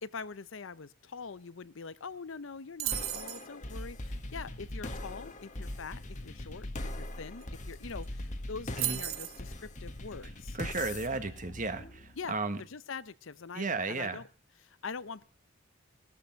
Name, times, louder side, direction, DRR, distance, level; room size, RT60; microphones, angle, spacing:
voice 1, 0.0-6.7 7.0-10.6 12.2-14.3 14.6-15.2, left 5 dB, 65° left, 17 dB, 0.7 m, -44 dB
sound 1, 2.8-3.5 7.4-7.5 7.7-8.1 8.8-9.4, right 15 dB, 75° right, 0.8 m, -34 dB
sound 2, 2.9-12.3, left 1 dB, 35° left, 1.5 m, -41 dB
voice 2, 10.5-12.6 13.5-14.2, right 3 dB, 40° right, 10 dB, 1.5 m, -34 dB
18.0 x 13.0 x 4.5 m, 0.34 s
head